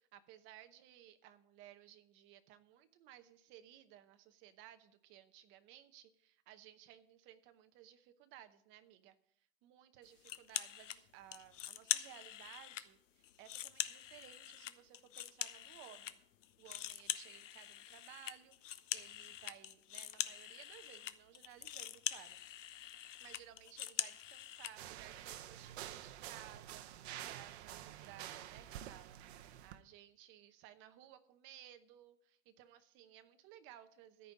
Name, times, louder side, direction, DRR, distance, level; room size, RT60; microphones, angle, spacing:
voice 1, 0.0-9.1 9.6-16.2 16.6-22.4 23.2-34.3, right 12 dB, 35° right, 10 dB, 0.9 m, -59 dB
sound 1, 10.2-11.0 11.3-12.8 13.2-16.1 16.4-24.7, left 12 dB, 85° left, 0.9 m, -43 dB
sound 2, 24.7-29.8, right 12 dB, 60° right, 0.9 m, -49 dB
13.5 x 5.4 x 8.4 m, 0.69 s
supercardioid pair, 150°, 36 cm